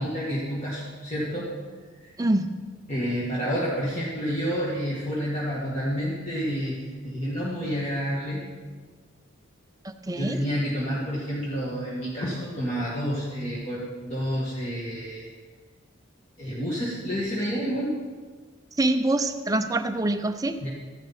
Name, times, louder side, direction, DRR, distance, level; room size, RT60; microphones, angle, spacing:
voice 1, 0.0-1.5 2.0-2.1 2.9-6.8 7.0-8.5 10.2-15.3 16.4-18.0 20.6-20.7, equal, 30° left, -7 dB, 2.1 m, -29 dB
voice 2, 2.2-2.5 9.8-10.4 18.8-20.6, right 2 dB, 15° right, 7 dB, 0.6 m, -25 dB
14.5 x 11.5 x 4.3 m, 1.5 s
head